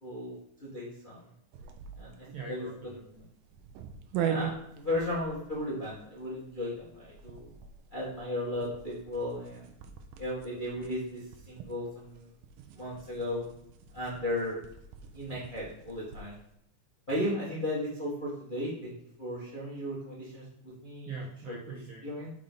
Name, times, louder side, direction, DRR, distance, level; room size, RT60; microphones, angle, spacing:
voice 1, 0.0-1.3 2.0-2.7 4.1-7.5 7.9-9.7 10.2-12.3 12.7-13.4 13.9-14.6 15.1-16.4 17.1-21.2 21.5-21.6 22.0-22.3, left 1 dB, 30° left, -6 dB, 1.0 m, -35 dB
sound 1, 1.5-16.4, right 8 dB, 80° right, 2.2 m, -42 dB
voice 2, 2.3-3.2 21.0-22.1, right 4 dB, 65° right, -3 dB, 1.4 m, -42 dB
5.8 x 3.9 x 5.0 m, 0.75 s
omnidirectional pair, 3.6 m